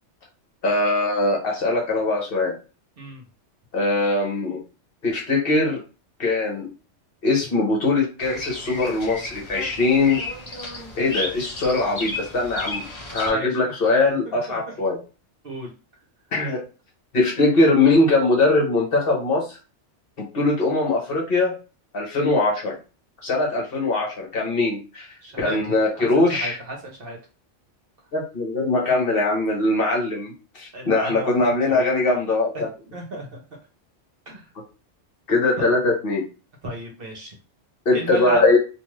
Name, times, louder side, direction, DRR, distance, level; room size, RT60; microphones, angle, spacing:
voice 1, 0.6-2.5 3.7-4.6 5.0-5.8 6.2-6.7 7.2-10.2 11.0-12.8 13.1-15.0 16.3-16.6 17.1-19.6 20.2-21.5 21.9-22.8 23.2-25.1 25.4-26.6 28.1-32.7 35.3-36.2 37.8-38.6, left 2 dB, 55° left, -2 dB, 1.0 m, -21 dB
Bird vocalization bird call bird song, 8.2-13.3, left 2 dB, 30° left, 0.5 m, -33 dB
voice 2, 13.3-13.7 14.3-14.8 15.4-15.7 25.2-27.2 30.7-31.9 32.5-32.7 32.9-33.4 34.3-34.5 35.6-35.7 36.6-37.3 37.9-38.4, right 1 dB, 55° right, 0 dB, 0.9 m, -34 dB
2.5 x 2.4 x 3.1 m, 0.33 s
omnidirectional pair, 1.3 m